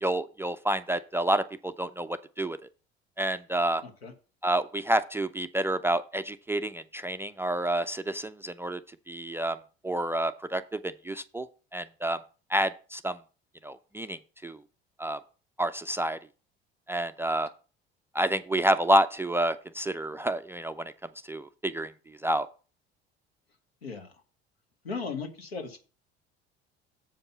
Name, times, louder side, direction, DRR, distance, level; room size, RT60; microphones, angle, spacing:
voice 1, 0.0-2.6 3.2-3.8 4.4-8.8 9.1-9.6 9.8-11.5 11.7-12.2 12.5-13.2 13.6-14.6 15.0-15.2 15.6-16.2 16.9-17.5 18.1-20.9 21.3-21.9 22.2-22.5, right 1 dB, 10° right, 10 dB, 0.4 m, -29 dB
voice 2, 3.8-4.1 23.8-24.1 24.8-25.8, left 4 dB, 80° left, 6 dB, 1.4 m, -36 dB
7.6 x 5.3 x 5.5 m, 0.36 s
figure-of-eight pair, 60°, 30 cm